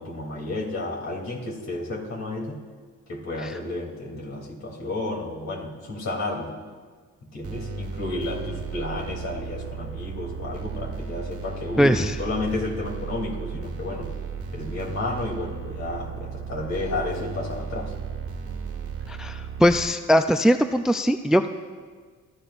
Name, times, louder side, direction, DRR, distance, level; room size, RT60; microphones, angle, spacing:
voice 1, 0.0-2.6 3.1-6.6 7.2-14.2 14.5-17.9, left 2 dB, 60° left, -1 dB, 3.1 m, -32 dB
sound 1, 7.4-19.8, right 6 dB, 50° right, 1.5 m, -35 dB
voice 2, 11.8-12.2 19.1-21.5, equal, ahead, 9 dB, 0.4 m, -20 dB
23.0 x 13.5 x 2.6 m, 1.5 s
cardioid pair, 90°, 30 cm